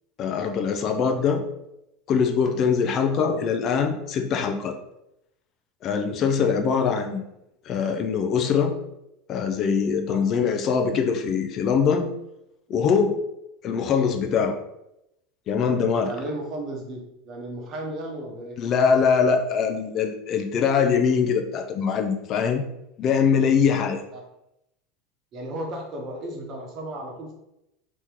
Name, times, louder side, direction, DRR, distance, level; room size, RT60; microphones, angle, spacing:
voice 1, 0.2-1.4 2.1-4.7 5.8-7.2 7.7-8.7 9.3-12.1 12.7-13.2 13.6-14.6 15.5-16.1 18.6-22.6 23.0-24.0, left 6 dB, 45° left, 4 dB, 0.5 m, -22 dB
voice 2, 16.0-18.6 24.1-24.2 25.3-27.3, right 1 dB, 45° right, 1 dB, 0.9 m, -34 dB
3.0 x 2.8 x 3.6 m, 0.85 s
hypercardioid pair, 80°, 0 cm